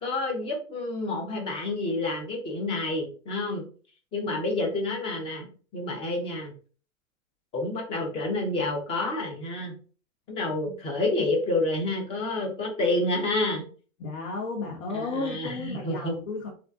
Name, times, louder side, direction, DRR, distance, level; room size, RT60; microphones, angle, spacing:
voice 1, 0.0-3.6 4.1-6.5 7.5-9.7 10.3-13.6 14.9-16.1, left 2 dB, 15° left, 1 dB, 0.3 m, -29 dB
voice 2, 14.0-16.5, left 3 dB, 70° left, -1 dB, 0.7 m, -33 dB
2.4 x 2.1 x 2.4 m, 0.40 s
hypercardioid pair, 100°, 42 cm